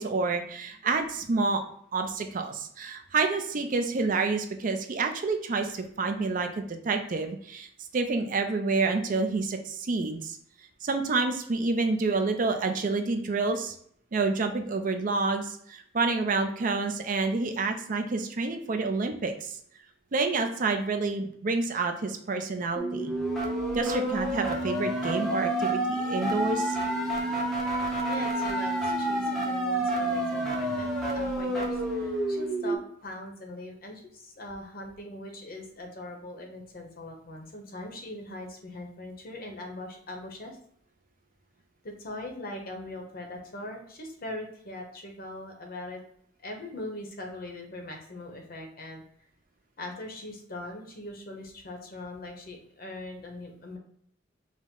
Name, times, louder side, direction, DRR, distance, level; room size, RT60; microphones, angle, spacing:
voice 1, 0.0-1.6 1.9-7.7 7.9-10.4 10.8-13.7 14.1-19.6 20.1-23.1 23.7-26.8, right 3 dB, 45° right, 6 dB, 0.5 m, -28 dB
sound 1, 22.8-32.8, right 1 dB, ahead, 0.7 m, -29 dB
voice 2, 28.0-40.6 41.8-46.0 46.4-49.0 49.8-53.8, left 1 dB, 50° left, 3 dB, 0.9 m, -41 dB
5.0 x 2.1 x 3.7 m, 0.65 s
head